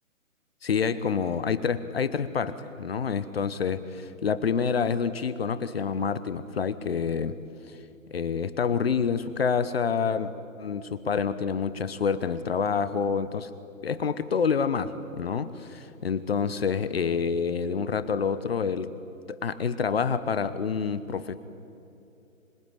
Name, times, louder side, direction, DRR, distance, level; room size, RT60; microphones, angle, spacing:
voice 1, 0.6-7.4 7.7-7.8 8.1-10.3 10.6-13.5 13.8-18.9 19.3-21.4, left 6 dB, 45° left, 13 dB, 1.0 m, -27 dB
25.5 x 21.0 x 9.8 m, 2.8 s
figure-of-eight pair, 140°, 42 cm